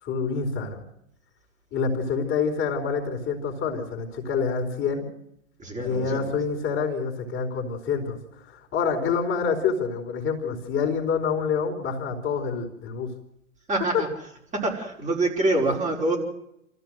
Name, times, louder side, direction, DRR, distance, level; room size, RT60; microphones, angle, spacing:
voice 1, 0.0-0.8 1.7-5.1 5.8-13.1, left 5 dB, 30° left, 3 dB, 4.4 m, -27 dB
voice 2, 5.6-6.2 13.7-14.1 14.5-16.2, right 2 dB, 15° right, -1 dB, 5.2 m, -25 dB
28.0 x 14.5 x 8.0 m, 0.80 s
figure-of-eight pair, 95°, 41 cm